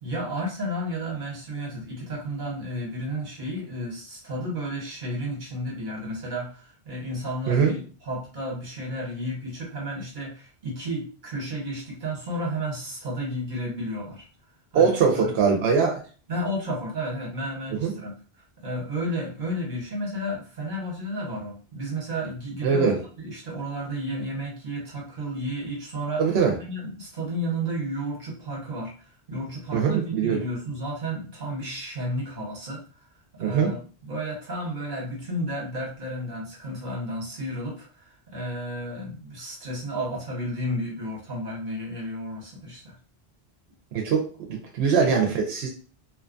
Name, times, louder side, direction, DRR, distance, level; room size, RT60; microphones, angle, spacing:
voice 1, 0.0-14.2 14.7-15.3 16.3-26.3 26.6-28.9 29.3-32.8 33.3-42.9, equal, 50° right, -3 dB, 1.3 m, -32 dB
voice 2, 14.7-16.0 17.8-17.9 22.6-23.0 26.2-26.5 29.7-30.4 33.4-33.7 43.9-45.7, right 6 dB, 90° right, 1 dB, 0.9 m, -22 dB
2.7 x 2.3 x 2.5 m, 0.39 s
omnidirectional pair, 1.1 m